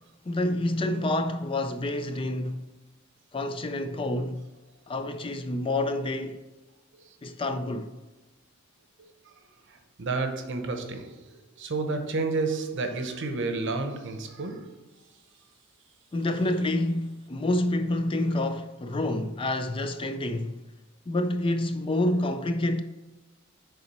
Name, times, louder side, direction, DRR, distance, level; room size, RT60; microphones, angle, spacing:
voice 1, 0.3-2.6 3.3-4.5 4.9-6.4 7.2-7.9 16.1-20.6 21.1-22.8, left 1 dB, 25° left, 0.4 m, -28 dB
voice 2, 9.7-14.8, right 3 dB, 60° right, 0.8 m, -31 dB
6.9 x 4.1 x 4.2 m
head